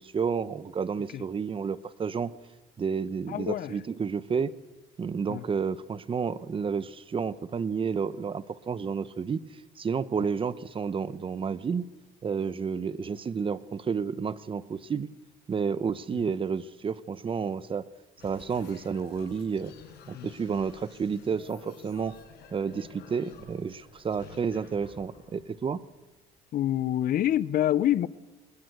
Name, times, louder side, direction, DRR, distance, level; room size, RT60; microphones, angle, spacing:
voice 1, 0.0-2.3 2.8-4.5 5.0-9.4 9.8-11.9 12.2-15.1 15.5-17.9 18.2-19.7 20.1-22.2 22.5-25.8, right 6 dB, 30° right, 0.9 m, -31 dB
voice 2, 3.3-3.8 5.3-5.4 20.1-20.3 26.5-28.1, left 12 dB, 60° left, 0.8 m, -26 dB
sound 1, 18.2-26.4, left 7 dB, 75° left, 5.1 m, -52 dB
22.0 x 21.0 x 7.9 m
cardioid pair, 110°, 17 cm